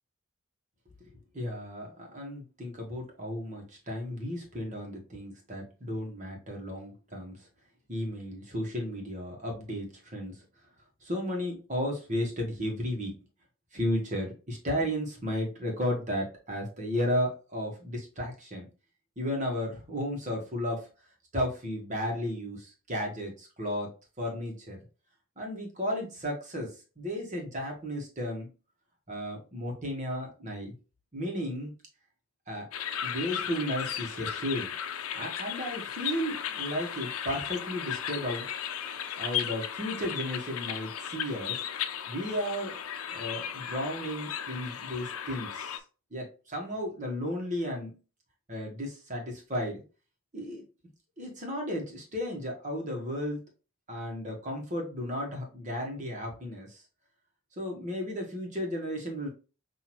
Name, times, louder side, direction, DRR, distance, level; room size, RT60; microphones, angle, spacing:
voice 1, 1.3-7.5 7.9-10.4 11.0-13.2 13.7-18.7 19.2-20.9 21.3-23.9 24.2-24.8 25.4-28.5 29.1-30.7 31.1-31.7 32.5-32.7 33.0-34.7 35.1-38.5 39.2-41.6 42.1-42.7 43.1-45.8 46.1-48.0 48.5-49.8 50.3-50.6 51.2-53.4 53.9-56.8 57.6-59.3, equal, 35° right, 1 dB, 1.3 m, -34 dB
sound 1, 32.7-45.8, left 9 dB, 85° left, 0.5 m, -36 dB
5.8 x 2.7 x 3.0 m, 0.34 s
head